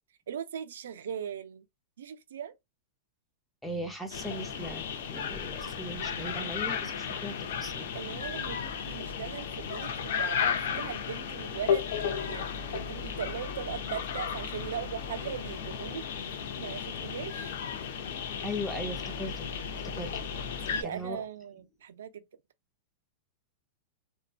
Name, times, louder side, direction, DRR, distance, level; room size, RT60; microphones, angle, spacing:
voice 1, 0.3-1.7 2.0-2.5 7.9-12.5 12.7-16.1 16.6-17.6 20.6-22.2, right 8 dB, 85° right, 0.4 m, -39 dB
voice 2, 3.6-4.8 5.1-7.9 18.4-19.5 19.8-20.1 20.8-21.2, equal, 5° left, 0.6 m, -38 dB
sound 1, 4.1-20.8, left 7 dB, 70° left, 0.6 m, -34 dB
2.7 x 2.1 x 2.4 m
supercardioid pair, 150°, 0 cm